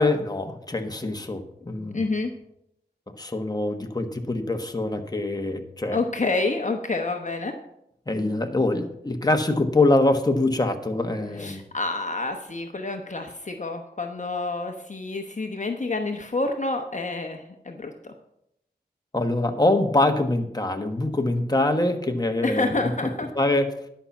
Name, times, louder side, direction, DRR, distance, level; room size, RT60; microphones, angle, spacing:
voice 1, 0.0-2.0 3.2-6.0 8.1-11.6 19.1-22.9 23.3-23.7, left 2 dB, 20° left, 5 dB, 1.3 m, -24 dB
voice 2, 1.9-2.3 5.9-7.6 11.4-18.1 22.4-23.3, left 3 dB, 45° left, 4 dB, 1.0 m, -28 dB
11.0 x 5.7 x 7.1 m, 0.78 s
wide cardioid pair, 65°, 18 cm